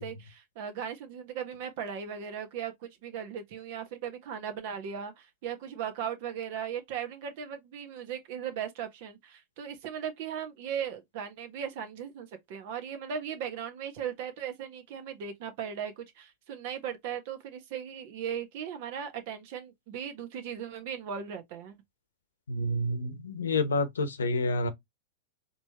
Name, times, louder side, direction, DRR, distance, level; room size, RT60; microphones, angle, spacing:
voice 1, 0.0-21.8, right 8 dB, 60° right, 1.2 m, -38 dB
voice 2, 22.5-24.7, left 2 dB, 90° left, 0.9 m, -28 dB
4.2 x 3.1 x 2.9 m
hypercardioid pair, 105°, 0 cm